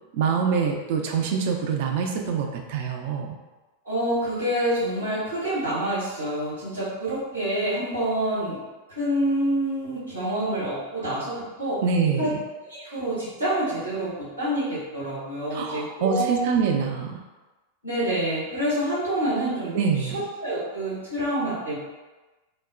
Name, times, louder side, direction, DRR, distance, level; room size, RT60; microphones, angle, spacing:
voice 1, 0.1-3.4 11.8-12.4 15.5-17.2 19.7-20.2, right 6 dB, 50° right, 3 dB, 0.3 m, -25 dB
voice 2, 3.8-8.6 8.9-11.8 12.2-12.3 12.6-16.6 17.8-21.7, right 1 dB, 80° right, -9 dB, 1.3 m, -27 dB
3.0 x 2.0 x 2.4 m, 1.2 s
figure-of-eight pair, 90°, 0 cm